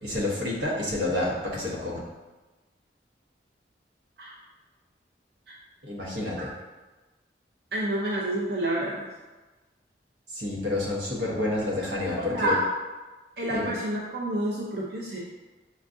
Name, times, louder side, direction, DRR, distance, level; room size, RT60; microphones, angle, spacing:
voice 1, 0.0-2.0 5.8-6.5 10.3-12.6 13.5-13.7, left 2 dB, 90° right, -4 dB, 1.1 m, -29 dB
voice 2, 7.7-9.1 12.2-12.6 13.4-15.2, right 1 dB, 60° right, -5 dB, 0.6 m, -28 dB
6.2 x 2.4 x 2.6 m, 1.2 s
head